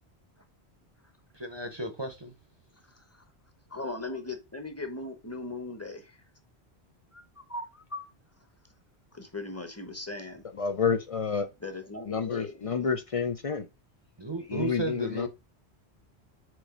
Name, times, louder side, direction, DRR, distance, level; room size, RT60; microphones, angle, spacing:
voice 1, 1.3-2.3 4.0-4.2 14.2-15.3, right 1 dB, 25° right, 0.7 m, -34 dB
voice 2, 2.9-3.2 3.7-6.2 7.1-8.1 9.1-10.4 11.6-12.7, left 2 dB, 15° left, 0.9 m, -39 dB
voice 3, 10.6-11.5 12.1-13.7 14.5-15.3, left 6 dB, 45° left, 0.4 m, -29 dB
4.8 x 4.2 x 5.0 m
omnidirectional pair, 1.1 m